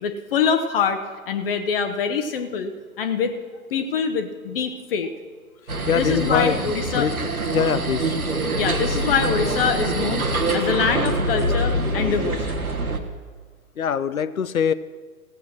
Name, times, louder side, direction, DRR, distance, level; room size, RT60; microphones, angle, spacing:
voice 1, 0.0-1.0 1.3-2.7 3.0-3.3 3.7-5.1 5.9-7.1 8.6-10.3 10.5-12.7, left 6 dB, 40° left, 6 dB, 0.9 m, -24 dB
sound 1, 5.7-13.0, right 1 dB, 80° right, 1.4 m, -24 dB
voice 2, 5.9-8.1 13.8-14.7, left 7 dB, 75° left, 15 dB, 0.7 m, -23 dB
16.0 x 7.9 x 6.2 m, 1.5 s
figure-of-eight pair, 110°, 42 cm